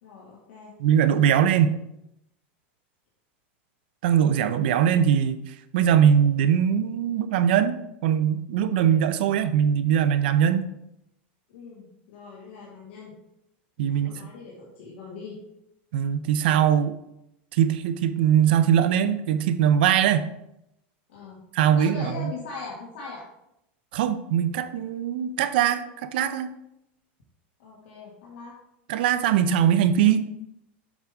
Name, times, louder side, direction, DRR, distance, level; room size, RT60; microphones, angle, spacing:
voice 1, 0.0-0.7 11.5-13.1 13.8-15.4 21.1-21.4 21.7-23.2 27.6-28.6, left 4 dB, 75° left, -5 dB, 1.8 m, -41 dB
voice 2, 0.8-1.8 4.0-5.4 5.7-10.7 13.8-14.1 15.9-17.0 17.5-20.3 21.5-22.3 23.9-26.5 28.9-30.2, right 9 dB, 55° right, 11 dB, 0.5 m, -21 dB
7.3 x 5.1 x 3.5 m, 0.82 s
supercardioid pair, 175°, 6 cm